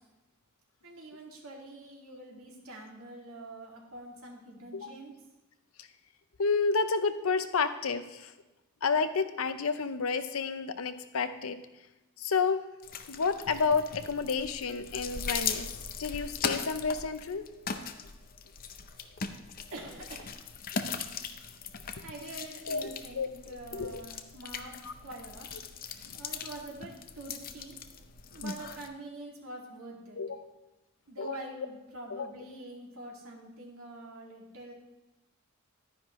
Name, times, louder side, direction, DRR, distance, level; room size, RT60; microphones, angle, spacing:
voice 1, 0.8-5.1 19.7-20.4 22.0-24.7 25.0-25.5 26.1-27.8 28.3-30.2 31.1-34.7, right 2 dB, 85° right, -1 dB, 2.3 m, -45 dB
voice 2, 6.4-8.3 8.8-11.6 12.2-12.6 13.1-15.7 16.0-17.5 22.7-24.0 24.8-24.9 30.2-30.4 31.2-31.4 32.1-32.3, left 5 dB, 85° left, 10 dB, 0.7 m, -30 dB
sound 1, 12.8-28.9, left 6 dB, 45° left, 0.6 m, -39 dB
11.5 x 10.0 x 3.1 m, 1.0 s
head